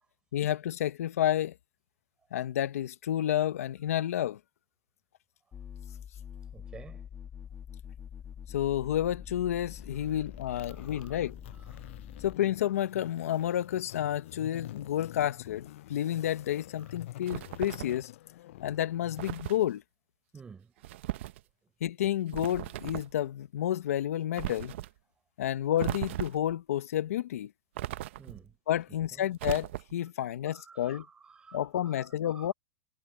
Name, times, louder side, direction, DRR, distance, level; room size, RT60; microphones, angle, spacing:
voice 1, 0.3-1.5 2.3-4.4 8.5-11.4 12.2-18.1 18.6-19.8 21.8-24.7 25.4-27.5 28.7-31.0 31.5-32.5, left 11 dB, 85° left, 0.9 m, -30 dB
sound 1, 5.5-12.4, left 8 dB, 20° left, 1.8 m, -45 dB
voice 2, 6.5-7.1 10.0-10.2 10.4-11.9 12.4-12.5 16.8-16.9 20.3-21.0 28.2-28.6 29.1-29.3 30.2-32.5, right 5 dB, 10° right, 6.1 m, -53 dB
sound 2, 9.5-19.4, left 15 dB, 60° left, 6.3 m, -48 dB
sound 3, 17.3-18.0 19.2-19.6 20.8-21.4 22.3-23.2 24.4-24.9 25.8-26.5 27.8-28.5 29.4-30.1, right 15 dB, 55° right, 0.7 m, -37 dB
supercardioid pair, 165°, 8 cm